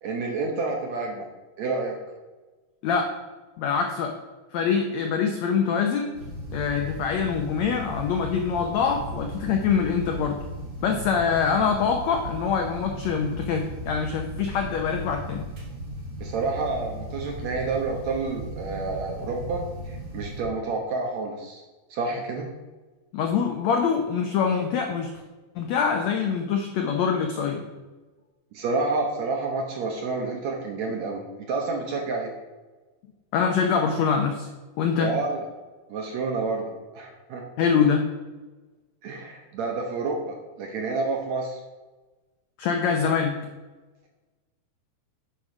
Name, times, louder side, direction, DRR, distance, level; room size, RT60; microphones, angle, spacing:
voice 1, 0.0-1.3 1.6-2.0 16.2-21.6 21.9-22.5 28.5-32.3 35.0-35.5 35.9-37.4 39.0-41.6, right 3 dB, 65° right, 1 dB, 1.9 m, -29 dB
voice 2, 2.8-3.1 3.6-4.1 4.5-6.1 6.5-10.4 10.8-15.5 23.1-25.1 25.5-27.6 33.3-34.5 34.8-35.1 37.6-38.1 42.6-43.4, left 6 dB, 85° left, 3 dB, 1.5 m, -24 dB
Gas Water Heater, 6.1-20.4, right 1 dB, 40° right, 1.5 m, -37 dB
8.9 x 5.0 x 6.0 m, 1.2 s
omnidirectional pair, 4.2 m